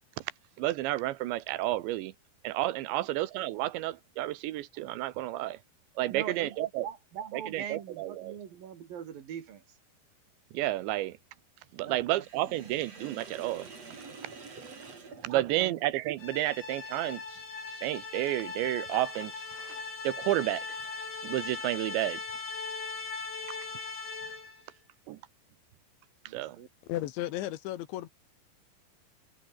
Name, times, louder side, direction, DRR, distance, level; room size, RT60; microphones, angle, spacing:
voice 1, 0.6-2.1 2.4-5.6 6.0-6.9 7.3-8.4 10.5-11.2 11.7-13.7 15.2-17.4 17.7-20.9 21.2-22.2 25.1-25.2 26.3-26.6, right 16 dB, 80° right, 3.3 m, -31 dB
voice 2, 6.1-9.6 11.8-12.2 15.3-15.8 26.3-26.7, right 8 dB, 55° right, 3.7 m, -41 dB
Sink (filling or washing), 12.1-16.1, right 4 dB, 35° right, 5.6 m, -47 dB
sound 1, 16.2-24.6, left 4 dB, 60° left, 9.8 m, -39 dB
voice 3, 26.9-28.1, left 14 dB, 85° left, 3.7 m, -34 dB
omnidirectional pair, 5.2 m